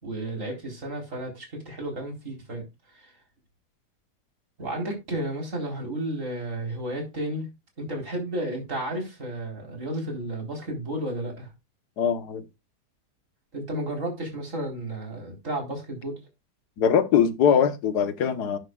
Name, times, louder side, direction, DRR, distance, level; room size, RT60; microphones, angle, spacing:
voice 1, 0.0-2.6 2.9-3.1 4.6-7.4 7.8-11.5 13.5-16.1, right 1 dB, 50° right, 4.6 m, -32 dB
voice 2, 12.0-12.4 16.8-18.6, left 7 dB, 75° left, 1.7 m, -22 dB
12.0 x 10.5 x 2.4 m
omnidirectional pair, 1.8 m